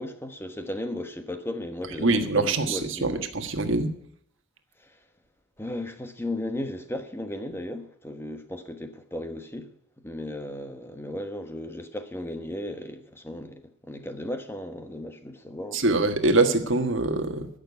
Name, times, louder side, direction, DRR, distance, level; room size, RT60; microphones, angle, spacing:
voice 1, 0.0-3.3 4.8-5.0 5.6-9.7 10.0-15.8, left 1 dB, 10° left, 1.2 m, -35 dB
voice 2, 2.0-3.9 15.7-17.5, right 2 dB, 60° right, 1.6 m, -24 dB
15.0 x 6.8 x 9.5 m
head